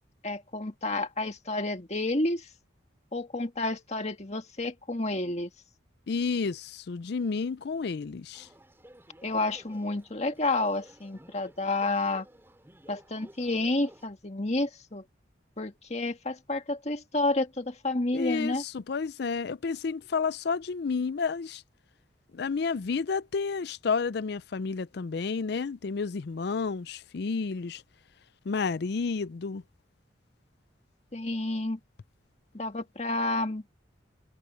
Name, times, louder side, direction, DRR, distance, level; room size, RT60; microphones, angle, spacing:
voice 1, 0.2-2.5 3.1-5.5 9.2-12.3 12.9-15.0 15.6-18.6 31.1-31.8 32.5-33.6, left 2 dB, 35° left, 1.9 m, -30 dB
voice 2, 6.1-8.5 18.1-21.6 22.3-27.8 28.5-29.6, left 5 dB, 60° left, 0.5 m, -31 dB
sound 1, 8.3-14.1, right 1 dB, 15° right, 2.5 m, -54 dB
head